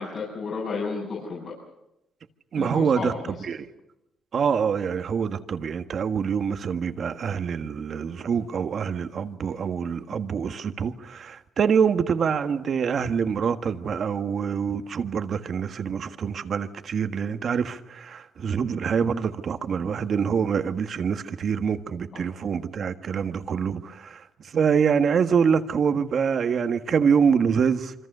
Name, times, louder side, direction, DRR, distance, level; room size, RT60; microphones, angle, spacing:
voice 1, 0.0-1.5 2.6-3.3 22.1-22.2, left 4 dB, 55° left, 7.6 m, -32 dB
voice 2, 2.5-3.1 3.4-3.7 4.3-24.2 24.5-27.9, right 6 dB, 55° right, 1.6 m, -25 dB
26.5 x 25.0 x 6.8 m
cardioid pair, 90°, 0 cm